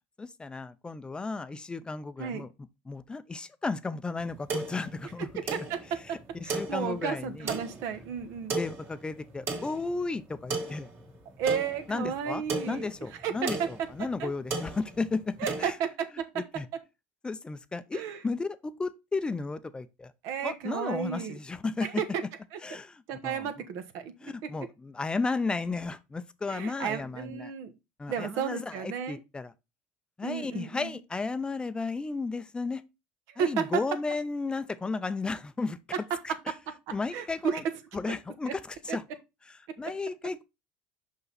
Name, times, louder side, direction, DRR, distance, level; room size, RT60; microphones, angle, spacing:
voice 1, 0.2-2.5 2.9-5.3 6.1-7.5 8.6-10.9 11.9-15.8 16.4-16.7 17.2-20.1 20.4-22.0 22.6-23.5 24.2-27.5 28.0-29.5 30.2-32.8 33.4-35.8 36.2-36.5 36.9-37.6 37.9-39.0 39.4-40.4, left 3 dB, 15° left, 0.6 m, -34 dB
sound 1, 4.2-15.7, right 3 dB, 45° right, 2.3 m, -37 dB
voice 2, 5.3-6.2 6.4-8.5 11.4-12.9 13.2-13.3 13.6-13.7 14.2-14.3 15.4-16.3 17.9-18.2 20.2-21.4 21.8-22.0 23.1-24.3 26.5-27.7 28.1-29.2 30.2-31.0 33.3-33.6 37.1-37.6 38.9-39.0, right 7 dB, 70° right, 1.3 m, -33 dB
5.6 x 5.5 x 4.0 m
supercardioid pair, 100°, 6 cm